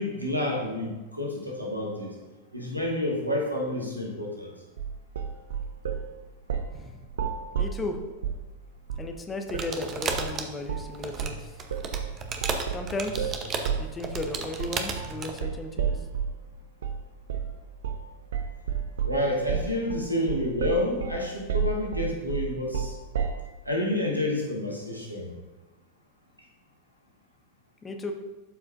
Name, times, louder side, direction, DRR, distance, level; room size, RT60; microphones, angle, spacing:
voice 1, 0.0-2.2 2.5-4.5 19.0-22.9 23.6-25.3, left 1 dB, 90° right, -1 dB, 1.5 m, -29 dB
sound 1, 4.8-6.1 6.5-6.8 7.1-8.5 8.9-9.1 9.5-9.7 10.1-10.3 10.7-10.9 11.2-16.4 16.8-17.0 17.3-17.6 17.8-18.1 18.3-23.5, right 7 dB, 65° right, 0.5 m, -31 dB
voice 2, 7.5-8.0 9.0-11.5 12.7-16.0 27.8-28.1, left 2 dB, 15° left, 5 dB, 0.8 m, -35 dB
sound 2, 9.5-15.4, right 5 dB, 30° right, 0.8 m, -34 dB
11.5 x 4.8 x 2.5 m, 1.2 s
figure-of-eight pair, 90°, 0 cm